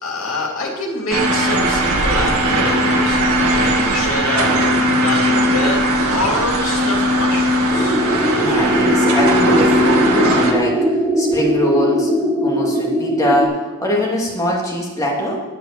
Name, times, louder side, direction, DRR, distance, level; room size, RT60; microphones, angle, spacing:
voice 1, 0.0-4.5 5.0-8.0, left 2 dB, 65° left, -1 dB, 3.0 m, -25 dB
sound 1, 1.1-10.5, equal, 80° right, 1.9 m, -18 dB
sound 2, 7.7-13.4, equal, ahead, 4.3 m, -19 dB
voice 2, 8.4-12.1 12.4-15.4, equal, 15° left, -3 dB, 2.8 m, -22 dB
11.5 x 8.7 x 7.0 m, 1.2 s
head